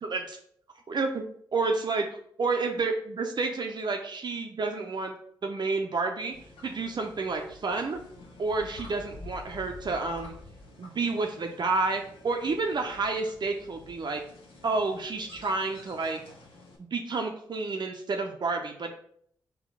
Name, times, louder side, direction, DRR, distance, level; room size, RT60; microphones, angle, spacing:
voice 1, 0.9-1.2 1.5-5.1 5.4-6.3 6.6-8.0 8.4-10.3 10.8-14.2 14.6-16.2 16.9-19.0, right 3 dB, 50° right, 3 dB, 0.6 m, -30 dB
sound 1, 6.3-16.8, left 2 dB, 65° left, 1.0 m, -49 dB
3.7 x 2.9 x 4.8 m, 0.64 s
hypercardioid pair, 40°, 10 cm